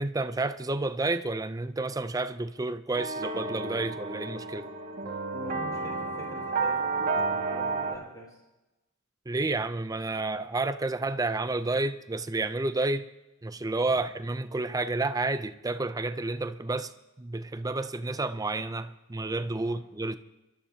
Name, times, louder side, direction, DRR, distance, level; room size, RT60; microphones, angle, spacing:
voice 1, 0.0-4.7 9.3-13.1 13.4-16.9 17.2-20.2, right 2 dB, 15° right, 0.5 m, -30 dB
sound 1, 2.9-7.9, right 3 dB, 45° right, 2.0 m, -31 dB
voice 2, 5.3-8.4 13.8-14.0 19.6-19.8, left 1 dB, 20° left, 5.3 m, -45 dB
28.5 x 12.5 x 2.9 m
head